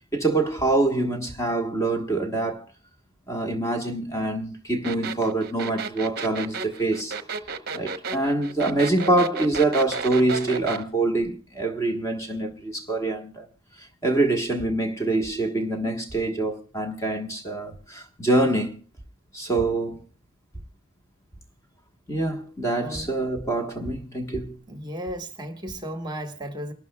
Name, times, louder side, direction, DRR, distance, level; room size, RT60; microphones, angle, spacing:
voice 1, 0.1-2.7 3.3-7.2 7.7-13.5 13.8-18.8 19.3-20.0 22.1-24.6, right 2 dB, 15° left, 1.3 m, -25 dB
sound 1, 4.8-10.8, right 4 dB, 45° right, 0.9 m, -32 dB
voice 2, 24.7-26.7, equal, 20° right, 1.4 m, -34 dB
28.5 x 12.5 x 2.3 m
head